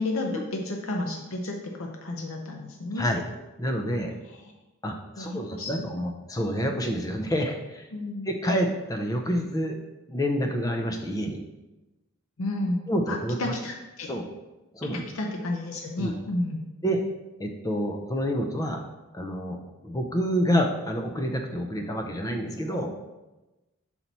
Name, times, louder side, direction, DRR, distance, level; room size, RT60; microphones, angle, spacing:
voice 1, 0.0-3.1 5.2-5.9 7.9-8.3 12.4-12.8 13.1-14.1 14.9-16.6, left 2 dB, 70° left, 1 dB, 0.6 m, -31 dB
voice 2, 3.6-4.1 4.8-7.9 8.2-9.8 10.1-11.4 12.9-13.5 14.1-14.3 14.7-15.1 16.0-16.2 16.8-17.0 17.4-18.8 19.1-19.6 19.8-22.9, equal, 15° left, 4 dB, 0.5 m, -28 dB
5.6 x 4.4 x 4.0 m, 1.1 s
head